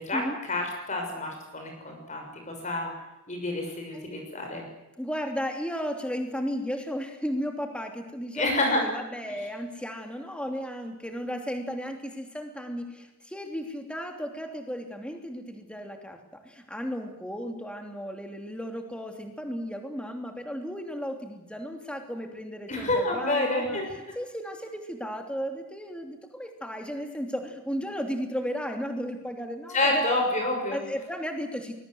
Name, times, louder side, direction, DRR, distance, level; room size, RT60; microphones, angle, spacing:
voice 1, 0.0-2.9 3.3-4.6 8.3-8.8 9.4-9.5 22.7-23.8 29.7-30.8, left 2 dB, 30° left, 2 dB, 6.4 m, -28 dB
voice 2, 5.0-16.2 16.4-30.0 30.7-31.7, equal, 5° left, 4 dB, 2.9 m, -34 dB
23.5 x 21.5 x 7.9 m, 0.96 s
head